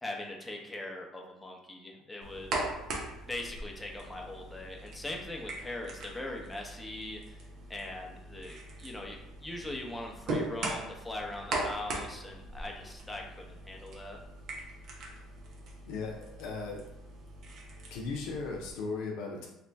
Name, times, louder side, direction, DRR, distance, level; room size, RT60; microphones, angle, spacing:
voice 1, 0.0-2.6 3.2-7.4 7.7-14.2, left 1 dB, 10° left, 0 dB, 0.8 m, -41 dB
sound 1, 2.2-18.7, right 2 dB, 60° right, 0.8 m, -40 dB
voice 2, 15.9-16.9 17.9-19.5, left 4 dB, 75° left, -1 dB, 0.6 m, -37 dB
3.1 x 2.4 x 3.4 m, 0.87 s
hypercardioid pair, 70°, 0 cm